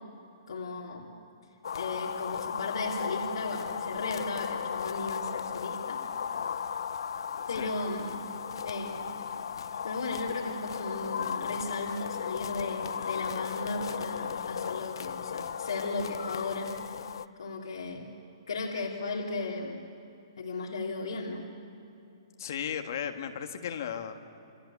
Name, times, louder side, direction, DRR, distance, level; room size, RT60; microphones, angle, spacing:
voice 1, 0.5-1.1 1.7-6.0 7.5-8.2 8.6-9.1 9.8-16.7 17.4-18.1 18.5-19.8 20.4-21.5, left 3 dB, 80° left, -2 dB, 3.0 m, -35 dB
sound 1, 1.6-17.3, left 7 dB, 60° left, 0.7 m, -36 dB
voice 2, 22.4-24.1, left 8 dB, 40° left, 6 dB, 1.6 m, -35 dB
29.0 x 24.5 x 8.3 m, 2.8 s
hypercardioid pair, 180°, 3 cm